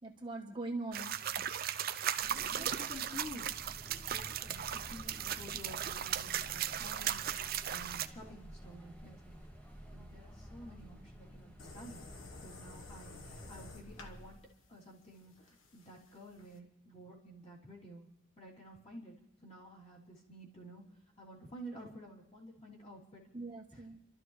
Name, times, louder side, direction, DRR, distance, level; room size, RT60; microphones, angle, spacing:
voice 1, 0.0-1.5 2.6-2.7 3.9-4.1 23.3-24.0, right 2 dB, 25° right, 1 dB, 1.1 m, -43 dB
sound 1, 0.9-8.1, right 10 dB, 50° right, 0.5 m, -37 dB
voice 2, 2.2-3.5 3.8-9.4 9.9-12.1 12.3-14.4 14.7-18.1 18.4-19.1 19.4-20.8 21.2-23.2 23.7-23.8, equal, 30° left, -4 dB, 3.2 m, -51 dB
sound 2, 2.2-14.4, equal, 5° left, 1.2 m, -52 dB
sound 3, 11.6-16.6, left 2 dB, 85° left, 1.2 m, -52 dB
29.5 x 13.0 x 3.2 m, 0.86 s
head